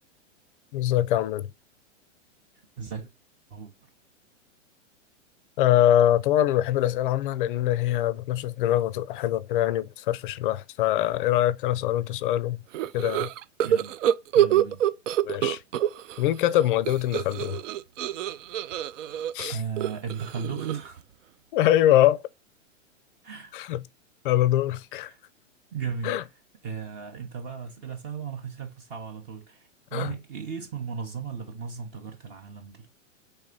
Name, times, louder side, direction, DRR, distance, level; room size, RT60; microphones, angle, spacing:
voice 1, 0.7-1.5 5.6-12.6 12.9-13.3 15.2-15.6 16.2-17.6 19.3-19.6 21.5-22.2 23.5-23.8 24.2-25.1 26.0-26.2 29.9-30.1, left 13 dB, 45° left, 0.4 m, -23 dB
voice 2, 2.8-3.1 3.5-3.7 13.6-13.9 14.3-14.9 19.5-21.0 23.2-23.5 25.0-25.2 25.7-26.2 26.6-32.9, right 6 dB, 25° right, 0.7 m, -36 dB
sound 1, 12.7-16.2 16.5-21.0, right 11 dB, 70° right, 0.6 m, -26 dB
4.1 x 3.4 x 3.7 m
hypercardioid pair, 140°, 38 cm